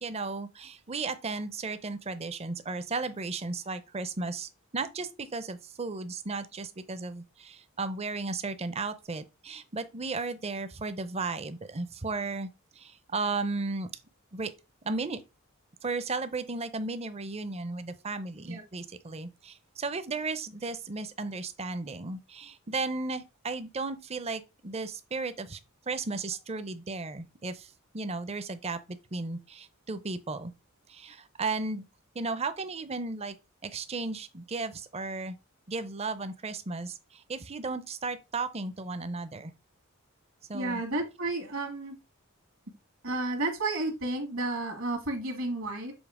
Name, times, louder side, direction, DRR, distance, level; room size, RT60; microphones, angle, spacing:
voice 1, 0.0-13.9 14.3-14.5 14.8-15.2 15.8-25.6 25.9-30.5 30.9-31.8 32.1-33.4 33.6-35.4 35.7-39.5 40.5-40.8, right 3 dB, 30° right, 0.6 m, -35 dB
voice 2, 40.5-42.0 43.0-45.9, right 2 dB, 65° right, 1.7 m, -32 dB
7.1 x 2.8 x 4.8 m
head